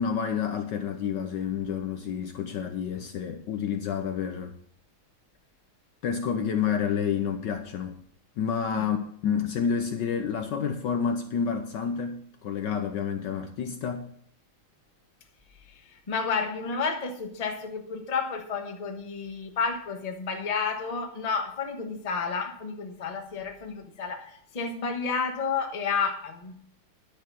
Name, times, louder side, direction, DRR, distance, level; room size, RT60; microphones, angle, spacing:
voice 1, 0.0-4.5 6.0-8.0 8.4-14.1, left 7 dB, 70° left, 1.2 m, -29 dB
voice 2, 15.7-26.5, left 5 dB, 25° left, 1.0 m, -31 dB
10.5 x 6.7 x 6.2 m
omnidirectional pair, 2.3 m